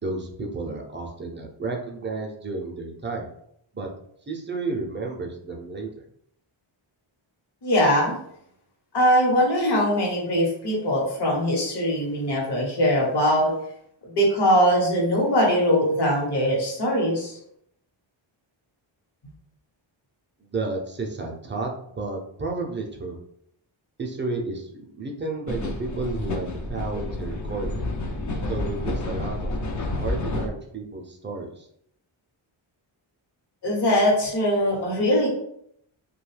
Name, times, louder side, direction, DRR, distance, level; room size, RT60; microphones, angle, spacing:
voice 1, 0.0-3.3 3.7-3.9 4.3-6.0 20.4-23.2 24.0-27.9 28.5-29.5 30.0-31.7, right 3 dB, 25° right, 1 dB, 0.5 m, -32 dB
voice 2, 7.6-8.2 8.9-13.5 14.0-17.4 33.6-35.3, equal, 55° left, -3 dB, 1.0 m, -21 dB
sound 1, 25.5-30.5, left 2 dB, 40° left, 0.5 m, -29 dB
2.7 x 2.3 x 3.2 m, 0.71 s
wide cardioid pair, 105°, 49 cm